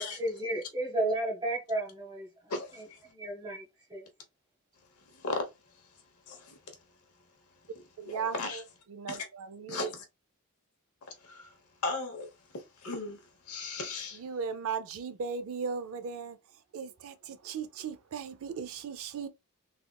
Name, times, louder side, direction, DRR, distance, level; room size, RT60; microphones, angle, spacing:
voice 1, 0.0-2.3 3.1-3.6 3.9-4.0, right 1 dB, 20° right, 1.1 m, -32 dB
voice 2, 2.5-3.0 5.1-5.5 6.3-6.6 8.1-8.6 9.1-9.2 9.7-10.0 11.2-11.6 11.8-12.3 12.5-13.2 13.5-14.2, left 3 dB, 80° left, 0.9 m, -36 dB
voice 3, 8.0-8.3 8.9-9.8 14.2-16.4 16.7-19.3, right 6 dB, 65° right, 0.4 m, -37 dB
3.5 x 2.4 x 2.2 m
head